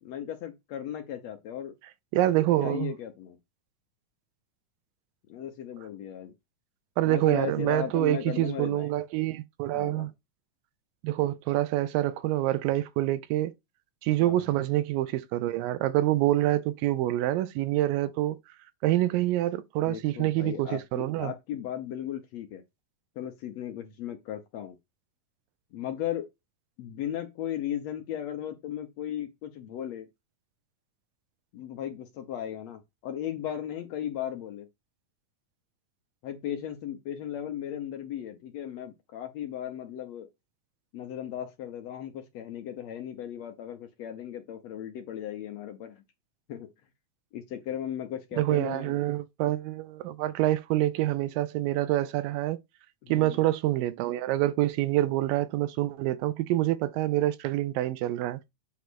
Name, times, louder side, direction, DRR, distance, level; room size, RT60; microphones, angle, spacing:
voice 1, 0.0-1.7 2.6-3.4 5.3-6.3 7.0-8.9 9.7-10.1 14.2-14.5 19.9-22.6 23.2-24.8 25.7-26.3 26.8-30.1 31.5-34.7 36.2-40.3 40.9-46.0 46.5-46.7 47.3-49.0 53.0-53.4, left 10 dB, 70° left, 1.7 m, -36 dB
voice 2, 2.1-2.9 7.0-10.1 11.0-13.5 14.0-18.4 18.8-21.3 48.4-52.6 53.1-58.4, right 15 dB, 90° right, 2.4 m, -26 dB
8.3 x 3.2 x 6.1 m
omnidirectional pair, 3.9 m